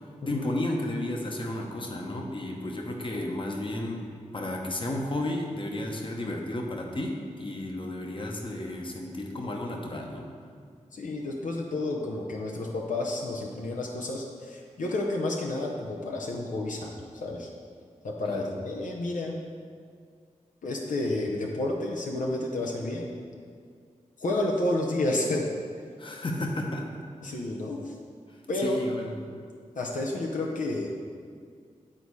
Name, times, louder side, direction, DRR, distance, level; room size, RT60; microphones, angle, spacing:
voice 1, 0.3-4.0 4.3-10.3 18.3-18.5 26.0-26.9 28.3-29.2, left 1 dB, 40° left, 1 dB, 1.1 m, -33 dB
voice 2, 10.9-17.5 18.0-19.4 20.6-23.1 24.2-25.5 27.2-27.9 28.5-28.8 29.8-30.9, left 2 dB, 80° left, -1 dB, 0.8 m, -30 dB
10.0 x 4.1 x 4.7 m, 2.1 s
wide cardioid pair, 70°, 13 cm